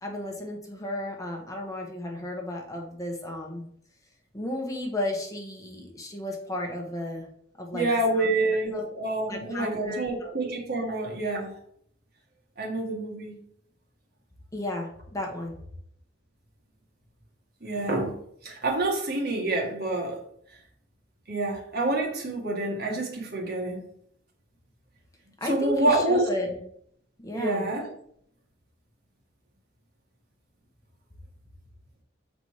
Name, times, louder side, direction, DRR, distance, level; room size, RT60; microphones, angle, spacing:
voice 1, 0.0-3.7 4.3-7.3 7.6-7.9 8.1-8.3 8.7-8.8 9.3-10.3 10.8-10.9 14.5-15.6 25.4-26.6 27.2-27.7, left 1 dB, 20° left, 1 dB, 1.1 m, -33 dB
voice 2, 7.7-11.5 12.6-13.3 17.6-18.1 18.4-20.2 21.3-23.8 25.4-26.2 27.3-27.9, right 2 dB, 55° right, 0 dB, 1.8 m, -27 dB
7.0 x 4.1 x 4.8 m, 0.67 s
head